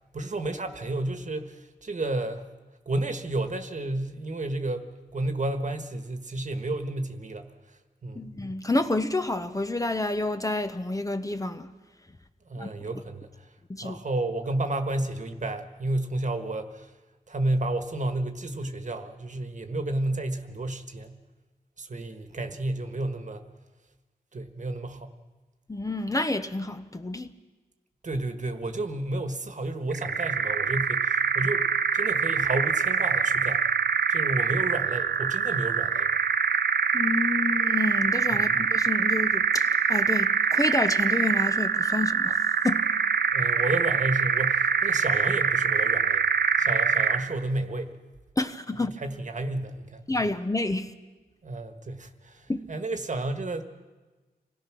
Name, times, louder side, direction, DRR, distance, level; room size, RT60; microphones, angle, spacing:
voice 1, 0.1-2.5 2.8-7.5 8.0-8.4 12.4-13.5 13.8-16.9 17.3-21.2 21.8-23.4 24.3-25.1 28.0-33.6 34.1-36.1 38.3-38.7 43.3-46.2 46.6-47.9 48.8-50.1 51.4-53.6, right 2 dB, 45° right, 1.5 m, -31 dB
voice 2, 8.1-11.7 12.6-12.7 13.7-14.0 25.7-27.3 36.9-42.8 48.4-49.0 50.1-50.9 52.5-52.6, left 2 dB, 20° left, 0.8 m, -29 dB
sound 1, 29.9-47.3, right 6 dB, 70° right, 0.7 m, -24 dB
26.0 x 17.0 x 6.2 m
wide cardioid pair, 100°, 17 cm